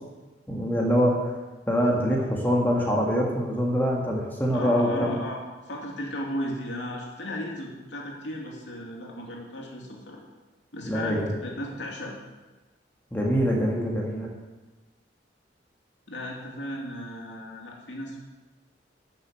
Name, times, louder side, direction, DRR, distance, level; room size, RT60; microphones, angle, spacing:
voice 1, 0.5-1.3 1.7-5.2 10.8-11.3 13.1-14.3, equal, 10° left, -2 dB, 1.8 m, -24 dB
voice 2, 4.5-10.2 10.7-12.2 16.1-18.2, left 1 dB, 85° left, -1 dB, 3.0 m, -35 dB
13.0 x 6.6 x 7.9 m, 1.2 s
head